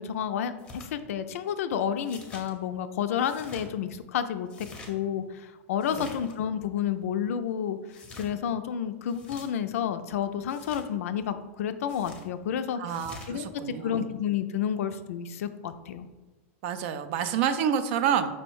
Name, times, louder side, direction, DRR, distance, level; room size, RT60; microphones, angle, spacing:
voice 1, 0.0-12.8 13.3-16.1, left 8 dB, 80° left, 11 dB, 0.3 m, -30 dB
sound 1, 0.6-0.9 2.1-2.5 3.2-3.7 4.5-4.9 5.8-6.4 7.9-8.3 9.1-9.5 10.5-10.8 11.9-12.3 12.9-13.3, left 2 dB, 10° left, 0.6 m, -46 dB
voice 2, 12.8-14.1 16.6-18.3, right 8 dB, 55° right, 11 dB, 0.4 m, -28 dB
5.2 x 2.1 x 4.5 m, 1.3 s
supercardioid pair, 145°, 8 cm